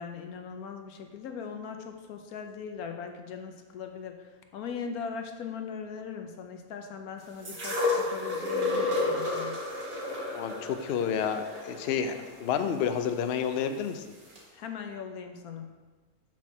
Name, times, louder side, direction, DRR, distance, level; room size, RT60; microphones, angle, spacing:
voice 1, 0.0-9.6 14.5-15.7, left 6 dB, 90° left, 5 dB, 1.2 m, -40 dB
sound 1, 7.4-13.5 14.4-14.5, left 2 dB, 55° right, 1.8 m, -31 dB
voice 2, 10.3-14.0, left 7 dB, 65° left, 8 dB, 0.6 m, -30 dB
6.2 x 4.3 x 5.9 m, 1.3 s
omnidirectional pair, 1.5 m